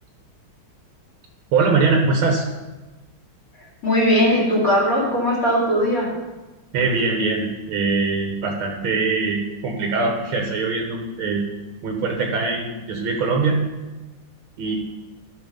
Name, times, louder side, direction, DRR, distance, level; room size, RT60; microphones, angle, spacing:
voice 1, 1.5-2.4 6.7-11.4 11.8-13.6 14.6-14.8, right 4 dB, 85° right, 1 dB, 2.0 m, -22 dB
voice 2, 3.8-6.1, equal, 40° left, -5 dB, 3.3 m, -19 dB
12.5 x 5.8 x 5.6 m, 1.1 s
omnidirectional pair, 2.2 m